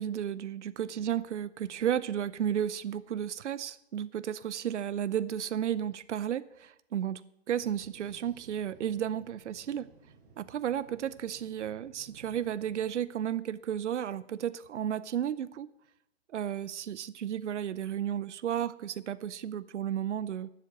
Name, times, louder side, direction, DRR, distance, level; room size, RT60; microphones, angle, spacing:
voice 1, 0.0-7.2 7.5-9.9 10.4-15.7 16.3-20.5, right 10 dB, 75° right, 18 dB, 0.7 m, -33 dB
sound 1, 7.5-12.9, right 5 dB, 45° right, 3.6 m, -57 dB
12.0 x 7.8 x 6.5 m, 0.80 s
hypercardioid pair, 125°, 36 cm